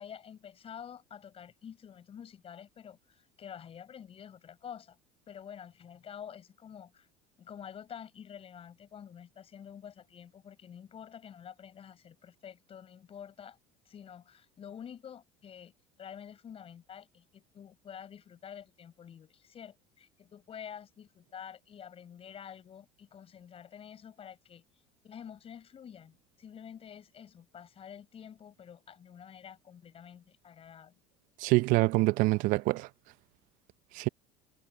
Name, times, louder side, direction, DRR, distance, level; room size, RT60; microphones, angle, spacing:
voice 1, 0.0-5.0 5.3-7.1 7.4-13.6 13.8-15.7 16.0-24.6 25.0-31.0, left 8 dB, 40° left, 6.2 m, -48 dB
voice 2, 31.4-32.9 33.9-34.1, right 22 dB, 65° right, 0.7 m, -25 dB
hypercardioid pair, 80°, 15 cm